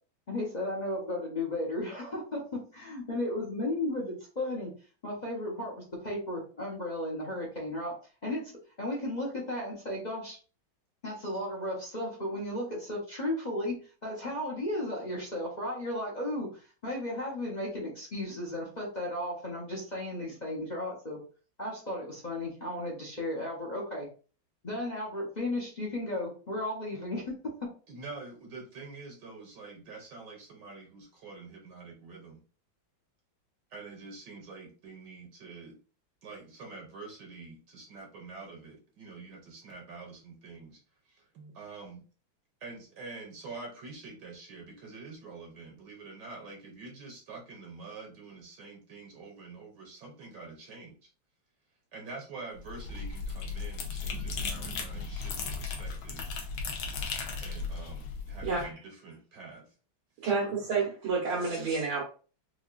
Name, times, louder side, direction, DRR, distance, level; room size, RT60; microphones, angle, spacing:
voice 1, 0.3-4.7 5.0-7.9 8.2-10.4 11.0-21.2 21.6-24.1 24.6-27.2, left 1 dB, 40° left, -3 dB, 0.6 m, -34 dB
voice 2, 27.9-32.4 33.7-35.8 36.2-40.8 41.0-42.0 42.6-51.1 51.9-56.3 57.4-59.7 60.2-60.6, right 3 dB, 65° right, 1 dB, 1.3 m, -46 dB
sound 1, 52.5-58.7, left 4 dB, 85° left, 1.6 m, -36 dB
voice 3, 60.2-62.0, right 4 dB, 90° right, -2 dB, 1.8 m, -29 dB
4.7 x 2.4 x 2.4 m, 0.37 s
omnidirectional pair, 2.2 m